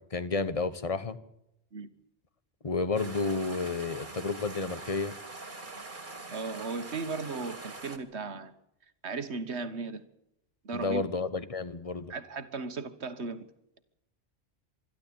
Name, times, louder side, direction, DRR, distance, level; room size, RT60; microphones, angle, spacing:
voice 1, 0.1-1.2 2.6-5.1 10.7-12.1, left 3 dB, 35° left, 1.2 m, -31 dB
sound 1, 3.0-8.0, right 3 dB, 45° right, 2.5 m, -43 dB
voice 2, 6.3-8.5 9.0-10.0 10.7-11.0 12.1-13.4, right 4 dB, 75° right, 1.7 m, -36 dB
25.5 x 11.5 x 8.7 m
omnidirectional pair, 1.1 m